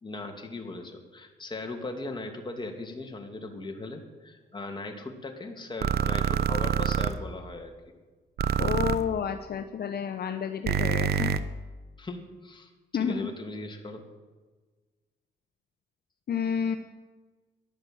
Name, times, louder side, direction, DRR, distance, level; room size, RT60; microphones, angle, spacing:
voice 1, 0.0-7.9 12.0-14.0, left 2 dB, 25° left, 3 dB, 2.7 m, -38 dB
sound 1, 5.8-7.1 8.4-9.0 10.7-11.4, right 8 dB, 55° right, 0.9 m, -26 dB
voice 2, 8.6-11.3 12.9-13.3 16.3-16.8, left 7 dB, 55° left, 8 dB, 0.9 m, -30 dB
14.0 x 11.0 x 7.8 m, 1.3 s
cardioid pair, 90°, 20 cm